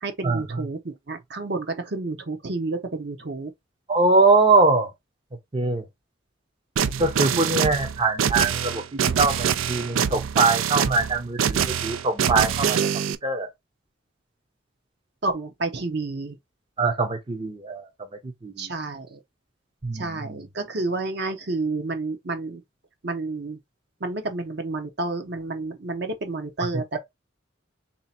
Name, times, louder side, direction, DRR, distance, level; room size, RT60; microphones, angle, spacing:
voice 1, 0.0-3.5 7.3-7.6 15.2-16.4 18.6-19.2 19.9-22.6 23.0-23.6 24.0-27.0, right 3 dB, 55° right, 0.8 m, -30 dB
voice 2, 3.9-4.9 5.5-5.8 7.0-8.8 9.2-12.9 13.2-13.5 16.8-17.9 18.4-18.7 19.8-20.4, right 3 dB, 25° right, 0.6 m, -22 dB
sound 1, 6.8-13.2, right 8 dB, 90° right, 0.4 m, -24 dB
3.3 x 2.7 x 4.2 m
head